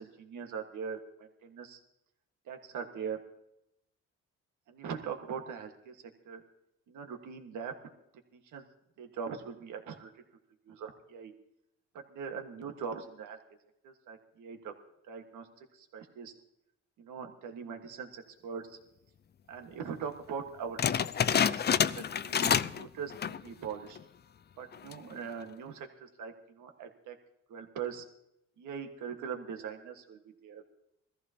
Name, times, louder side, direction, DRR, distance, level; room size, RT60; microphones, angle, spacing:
voice 1, 0.0-1.8 2.5-3.2 4.7-6.4 6.9-7.9 8.3-8.6 9.0-10.1 10.7-11.3 11.9-13.4 13.8-14.7 15.1-16.3 17.0-18.8 19.5-20.9 21.5-24.0 24.6-27.1 27.5-28.0 28.6-30.6, right 6 dB, 80° right, 5 dB, 1.6 m, -41 dB
sound 1, 20.8-22.8 23.1-23.5 24.0-24.1 24.7-25.1, left 8 dB, 35° left, 0.5 m, -28 dB
21.5 x 14.5 x 2.9 m, 0.81 s
cardioid pair, 90°, 30 cm